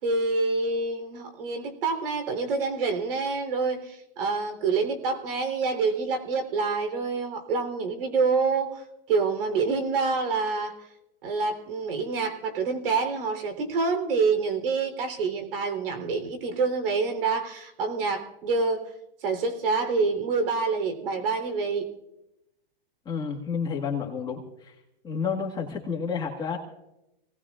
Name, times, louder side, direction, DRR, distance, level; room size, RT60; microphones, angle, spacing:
voice 1, 0.0-10.8 11.2-18.8 19.2-21.9, right 4 dB, 65° right, 7 dB, 3.6 m, -27 dB
voice 2, 23.0-24.7 25.0-26.6, left 6 dB, 15° left, 0 dB, 1.8 m, -30 dB
27.0 x 18.5 x 2.5 m, 0.92 s
hypercardioid pair, 150°, 30 cm